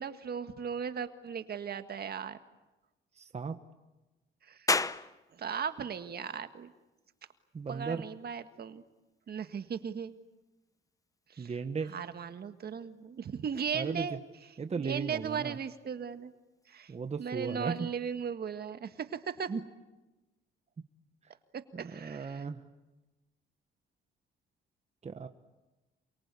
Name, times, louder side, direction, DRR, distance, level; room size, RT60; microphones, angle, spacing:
voice 1, 0.0-2.4 4.4-4.7 5.3-6.7 7.7-8.8 9.3-10.2 11.3-11.5 11.9-14.2 14.8-16.3 16.7-16.9 17.2-19.5 21.5-22.4, right 7 dB, 50° right, 9 dB, 1.7 m, -37 dB
voice 2, 3.2-3.6 7.5-8.0 11.4-11.9 13.7-14.2 14.6-15.6 16.9-17.9 19.5-19.7 21.7-22.6 25.0-25.3, right 5 dB, 35° right, 8 dB, 1.3 m, -36 dB
sound 1, 4.7-17.8, left 3 dB, 15° left, 0.8 m, -42 dB
28.0 x 24.0 x 8.4 m, 1.1 s
cardioid pair, 90°, 20 cm